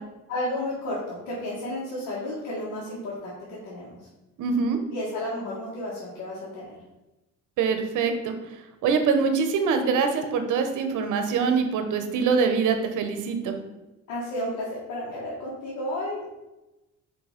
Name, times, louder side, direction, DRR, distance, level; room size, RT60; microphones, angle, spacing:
voice 1, 0.3-4.0 4.9-6.7 14.1-16.4, left 1 dB, 90° left, -7 dB, 1.9 m, -32 dB
voice 2, 4.4-4.8 7.6-8.3 8.8-13.6, right 5 dB, 85° right, 7 dB, 0.9 m, -24 dB
4.8 x 4.7 x 5.0 m, 1.0 s
cardioid pair, 90°, 30 cm